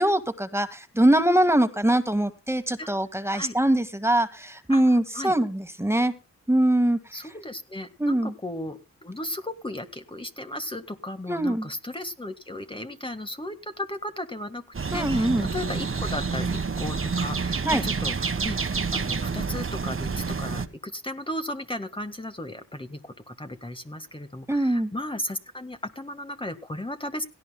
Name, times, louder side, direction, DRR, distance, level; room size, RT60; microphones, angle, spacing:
voice 1, 0.0-6.1 6.5-7.3 8.0-8.3 11.3-11.7 14.9-15.5 17.6-17.8 24.5-24.9, right 1 dB, 10° right, 9 dB, 1.9 m, -23 dB
voice 2, 4.7-5.3 7.1-14.6 14.9-18.6 18.9-27.2, left 1 dB, 15° left, 7 dB, 1.7 m, -35 dB
sound 1, 14.7-20.7, right 5 dB, 45° right, 1.6 m, -28 dB
17.5 x 15.5 x 2.3 m, 0.31 s
cardioid pair, 50°, 31 cm